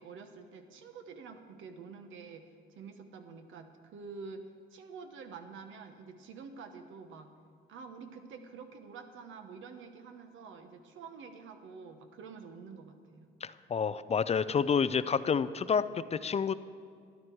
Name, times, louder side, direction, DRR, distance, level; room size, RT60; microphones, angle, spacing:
voice 1, 0.0-2.5 2.8-7.3 7.7-13.3, right 5 dB, 80° right, 6 dB, 1.1 m, -48 dB
voice 2, 13.4-16.5, left 6 dB, 35° left, 15 dB, 0.4 m, -29 dB
12.5 x 10.5 x 4.6 m, 2.3 s
cardioid pair, 90°, 20 cm